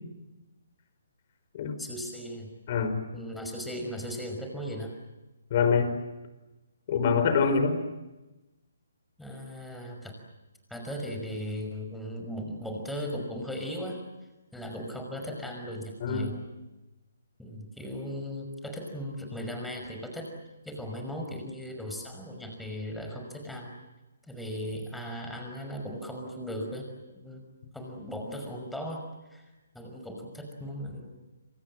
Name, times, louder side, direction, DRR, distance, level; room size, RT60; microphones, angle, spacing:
voice 1, 1.8-2.5 3.1-4.9 7.5-7.6 9.2-10.1 10.7-14.0 14.5-16.4 17.4-20.3 20.6-23.7 24.3-26.9 27.2-27.4 27.7-29.0 29.3-29.4 29.7-31.2, equal, 5° left, 3 dB, 5.7 m, -37 dB
voice 2, 2.7-3.0 5.5-5.9 6.9-7.8 16.0-16.3, left 5 dB, 40° left, 9 dB, 4.9 m, -25 dB
27.5 x 26.5 x 7.7 m, 1.1 s
figure-of-eight pair, 135°, 0 cm